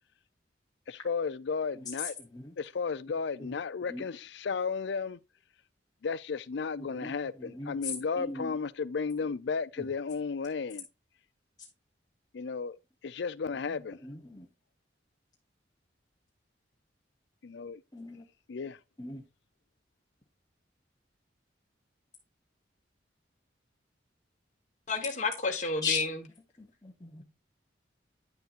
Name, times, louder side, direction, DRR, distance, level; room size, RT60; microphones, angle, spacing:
voice 1, 0.9-2.1 2.6-5.2 6.0-10.9 12.3-12.8 13.0-14.0 17.4-17.8 18.5-18.8, left 5 dB, 65° left, 0.4 m, -34 dB
voice 2, 2.2-2.5 3.4-3.5 3.9-4.0 6.8-7.1 7.4-7.9 8.2-8.5 9.8-9.9 14.0-14.5 17.9-18.2 19.0-19.2 25.8-26.0 26.6-27.2, left 4 dB, 20° left, 1.0 m, -38 dB
voice 3, 24.9-26.2, left 3 dB, 40° left, 1.3 m, -31 dB
9.5 x 6.7 x 2.5 m
head